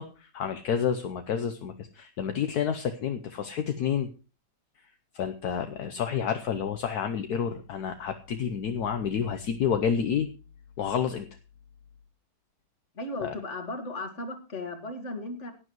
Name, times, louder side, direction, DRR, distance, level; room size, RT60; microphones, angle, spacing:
voice 1, 0.0-4.1 5.1-10.3 10.8-11.3 13.2-13.3, left 7 dB, 70° left, 7 dB, 1.3 m, -29 dB
voice 2, 12.9-15.5, left 2 dB, 45° left, 6 dB, 2.0 m, -36 dB
17.5 x 10.0 x 3.1 m, 0.33 s
omnidirectional pair, 1.8 m